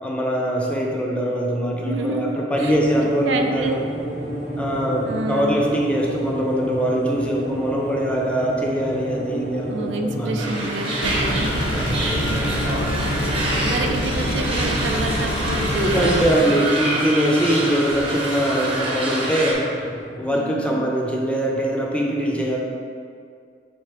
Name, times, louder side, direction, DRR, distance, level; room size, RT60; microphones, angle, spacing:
voice 1, 0.0-3.8 4.6-10.5 11.7-12.7 15.7-19.7 20.2-22.6, equal, 5° left, -2 dB, 0.5 m, -22 dB
voice 2, 1.8-2.8 3.2-3.8 5.1-5.7 9.7-11.7 12.0-12.3 12.8-16.5 20.3-20.9, right 2 dB, 75° right, 4 dB, 0.4 m, -29 dB
sound 1, 2.5-20.3, equal, 50° right, 1.0 m, -31 dB
sound 2, 10.4-19.5, right 2 dB, 30° right, 0.7 m, -27 dB
sound 3, 11.0-16.3, left 1 dB, 85° left, 0.6 m, -26 dB
4.3 x 3.7 x 3.3 m, 2.2 s
head